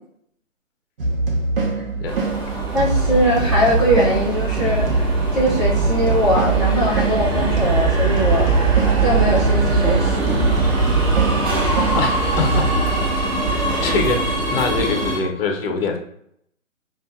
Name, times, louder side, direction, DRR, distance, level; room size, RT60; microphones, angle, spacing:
sound 1, 1.0-12.9, right 2 dB, 45° right, 1.1 m, -23 dB
Subway metro underground, 2.1-15.2, right 4 dB, 25° right, 1.4 m, -22 dB
voice 1, 2.7-8.7 9.0-10.5, equal, ahead, -17 dB, 0.8 m, -21 dB
voice 2, 11.9-12.7 13.5-16.0, left 4 dB, 45° left, 3 dB, 0.8 m, -24 dB
6.9 x 2.5 x 2.7 m, 0.71 s
figure-of-eight pair, 145°, 39 cm